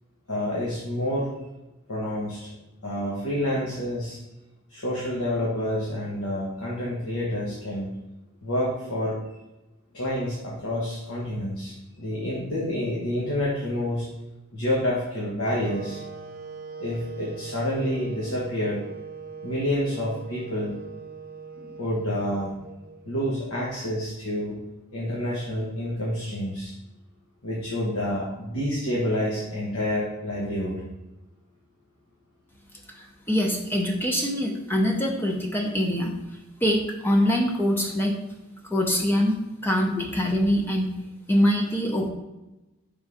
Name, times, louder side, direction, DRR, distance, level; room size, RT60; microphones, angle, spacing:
voice 1, 0.3-1.3 1.9-2.5 2.8-4.2 4.7-7.9 8.4-9.2 9.9-14.1 14.5-16.0 16.8-18.8 19.4-20.7 21.6-22.5 23.0-24.6 24.9-26.7 27.4-30.8 40.0-40.1, left 1 dB, 85° left, -5 dB, 1.2 m, -28 dB
Wind instrument woodwind instrument, 15.4-23.4, right 5 dB, 40° right, 0.5 m, -41 dB
voice 2, 32.9-36.1 36.6-38.1 38.7-39.4 39.6-40.9 41.3-42.1, equal, 10° left, 1 dB, 0.6 m, -24 dB
5.4 x 3.7 x 4.8 m, 1.0 s
head